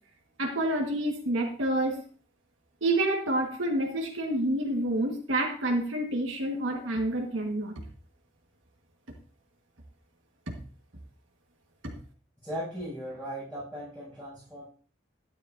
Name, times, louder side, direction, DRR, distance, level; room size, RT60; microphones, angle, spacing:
voice 1, 0.4-2.0 2.8-7.7 10.5-10.6 11.8-11.9, right 1 dB, 85° right, 0 dB, 1.6 m, -28 dB
voice 2, 12.4-14.6, equal, 5° left, -9 dB, 6.1 m, -38 dB
12.5 x 9.6 x 2.6 m, 0.41 s
head